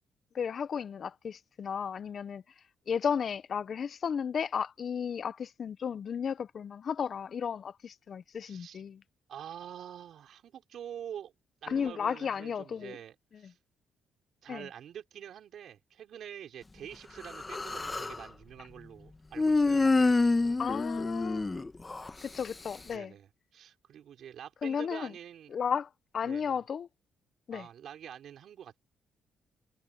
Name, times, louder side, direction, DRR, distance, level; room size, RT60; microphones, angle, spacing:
voice 1, 0.3-2.4 2.9-9.0 11.7-13.0 13.4-13.5 14.5-14.7 17.5-17.6 20.6-21.5 22.2-23.1 24.6-25.1 25.5-26.9 27.5-27.7, left 7 dB, 50° left, 0.7 m, -34 dB
voice 2, 8.4-8.8 9.3-11.3 11.6-13.6 14.4-20.6 22.9-25.6 26.2-26.6 27.5-28.8, right 9 dB, 70° right, 4.6 m, -46 dB
Human voice, 17.2-18.2 19.4-22.1, left 3 dB, 20° left, 1.3 m, -27 dB
cardioid pair, 90°, 0 cm